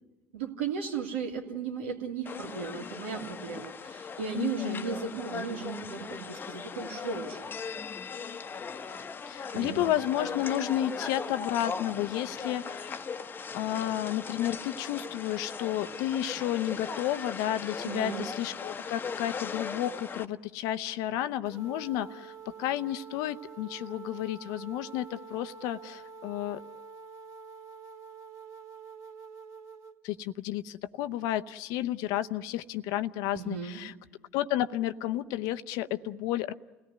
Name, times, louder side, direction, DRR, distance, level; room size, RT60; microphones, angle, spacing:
voice 1, 0.3-7.5 9.5-9.8 17.8-18.2 33.3-33.8, right 6 dB, 80° right, 1 dB, 2.8 m, -36 dB
sound 1, 2.3-20.3, left 5 dB, 35° left, 1.0 m, -39 dB
voice 2, 4.3-4.8 9.3-13.1 13.5-26.6 30.0-33.9 34.3-36.5, left 12 dB, 65° left, 12 dB, 0.8 m, -32 dB
sound 2, 21.5-30.0, right 6 dB, 55° right, 2.2 m, -47 dB
30.0 x 17.5 x 9.5 m, 1.2 s
hypercardioid pair, 65°, 6 cm